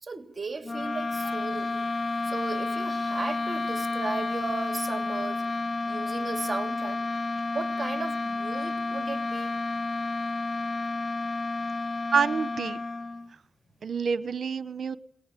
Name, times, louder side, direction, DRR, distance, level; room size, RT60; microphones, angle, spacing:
voice 1, 0.0-1.8 2.3-5.4 5.9-7.0 7.5-9.5, right 4 dB, 40° right, 7 dB, 2.9 m, -36 dB
sound 1, 0.6-13.3, left 3 dB, 45° left, 1.1 m, -31 dB
voice 2, 12.1-12.8 13.8-15.0, right 6 dB, 75° right, 15 dB, 1.1 m, -27 dB
21.5 x 19.5 x 9.1 m, 0.67 s
cardioid pair, 60°, 0 cm